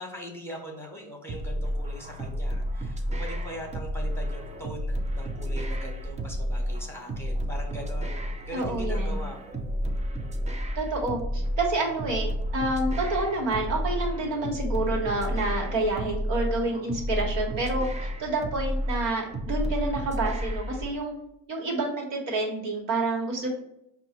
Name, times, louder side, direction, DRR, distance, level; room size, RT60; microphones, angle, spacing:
voice 1, 0.0-9.8, equal, 5° left, 0 dB, 1.1 m, -41 dB
sound 1, 1.3-20.9, equal, 15° right, 0.4 m, -31 dB
voice 2, 8.5-9.2 10.7-21.1 21.5-23.5, right 2 dB, 70° right, 0 dB, 1.6 m, -28 dB
4.7 x 2.5 x 4.3 m, 0.76 s
supercardioid pair, 80°, 45 cm